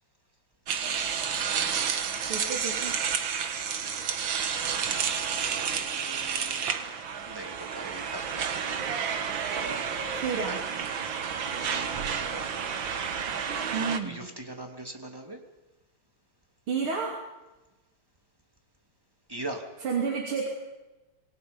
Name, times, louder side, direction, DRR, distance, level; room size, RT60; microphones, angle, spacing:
sound 1, 0.7-14.0, right 7 dB, 65° right, 2.1 m, -30 dB
voice 1, 2.3-3.0 10.1-10.6 13.7-14.3 16.7-17.2 19.8-20.5, right 5 dB, 85° right, 0 dB, 3.8 m, -30 dB
voice 2, 5.1-6.7 7.3-8.7 11.7-12.5 14.0-15.4 19.3-19.6, right 1 dB, 10° right, 3 dB, 2.7 m, -41 dB
26.5 x 22.0 x 5.4 m, 1.1 s
omnidirectional pair, 2.3 m